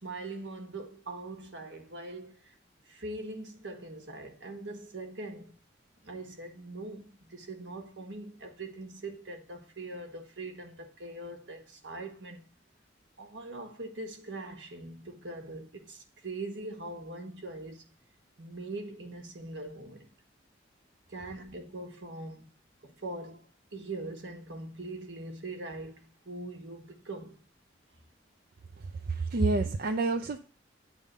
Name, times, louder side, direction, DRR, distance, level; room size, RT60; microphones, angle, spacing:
voice 1, 0.0-2.4 2.9-5.5 6.0-12.4 13.2-17.8 18.4-20.1 21.1-22.5 22.8-23.5 23.7-27.4, right 2 dB, 75° right, 1.5 m, -42 dB
voice 2, 28.8-30.4, right 3 dB, 50° right, 0.5 m, -29 dB
8.6 x 3.6 x 6.6 m
head